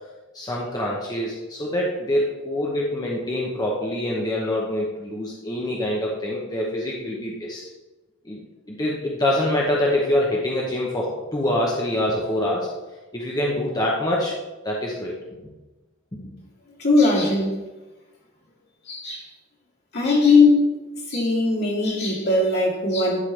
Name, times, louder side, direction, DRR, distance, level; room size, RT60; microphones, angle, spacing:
voice 1, 0.3-7.6 8.2-8.4 8.7-12.7 13.1-14.3 14.6-15.2 16.1-16.3, left 1 dB, 20° left, -3 dB, 1.0 m, -25 dB
voice 2, 16.8-17.5 18.9-19.3 19.9-20.7 21.1-23.2, left 3 dB, 55° left, -4 dB, 2.4 m, -19 dB
11.5 x 4.6 x 3.3 m, 1.1 s
head